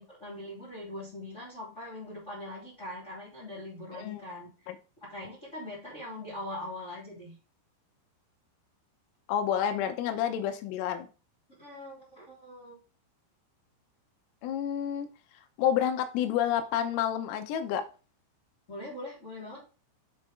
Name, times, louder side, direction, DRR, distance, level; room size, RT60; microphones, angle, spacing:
voice 1, 0.0-4.7 5.0-7.4 11.6-12.8 18.7-19.6, left 1 dB, 20° left, -6 dB, 2.4 m, -42 dB
voice 2, 9.3-11.1 14.4-15.1 15.6-17.8, left 9 dB, 90° left, 6 dB, 3.5 m, -29 dB
7.6 x 5.3 x 3.5 m, 0.33 s
omnidirectional pair, 5.9 m